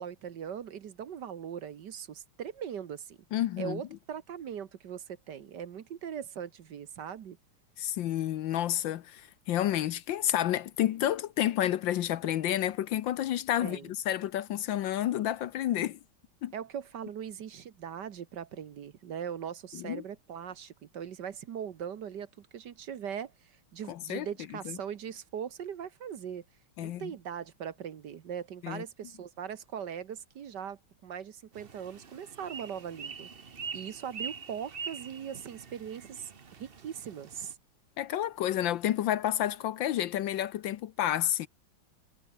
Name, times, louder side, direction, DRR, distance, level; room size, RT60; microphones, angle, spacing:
voice 1, 0.0-3.2 3.6-7.4 13.6-13.9 16.5-26.4 26.8-33.3 33.7-37.5, right 8 dB, 60° right, 1.6 m, -40 dB
voice 2, 3.3-3.8 7.8-16.0 16.4-16.5 19.7-20.0 23.9-24.3 24.7-24.8 26.8-27.1 28.6-28.8 38.0-41.5, left 12 dB, 70° left, 1.4 m, -30 dB
sound 1, 31.5-37.5, right 6 dB, 35° right, 1.0 m, -44 dB
omnidirectional pair, 2.3 m